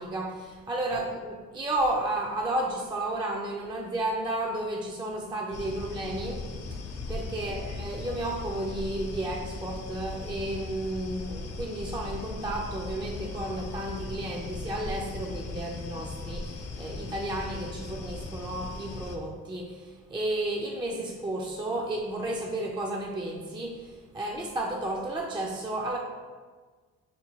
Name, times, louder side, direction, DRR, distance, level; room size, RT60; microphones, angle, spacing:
voice 1, 0.0-26.0, right 1 dB, 15° right, 0 dB, 0.4 m, -32 dB
sound 1, 5.5-19.2, left 3 dB, 55° left, 0.6 m, -38 dB
6.5 x 2.2 x 2.9 m, 1.5 s
cardioid pair, 90°, 30 cm